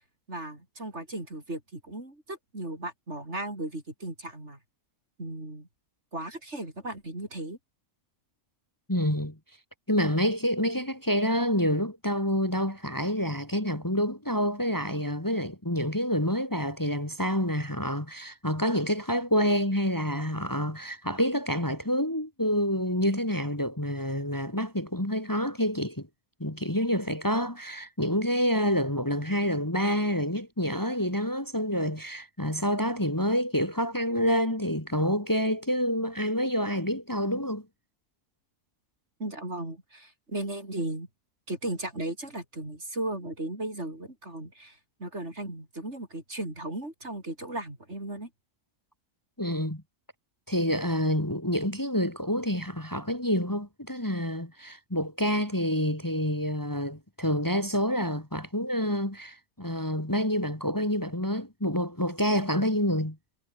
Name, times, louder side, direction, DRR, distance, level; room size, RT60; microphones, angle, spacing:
voice 1, 0.3-4.6 5.2-5.7 6.1-7.6 39.2-41.1 41.5-48.3, right 1 dB, 45° right, 6.1 m, -36 dB
voice 2, 8.9-9.4 9.9-26.1 26.4-37.6 49.4-49.8 50.5-63.2, equal, 10° left, 3.2 m, -28 dB
omnidirectional pair, 1.6 m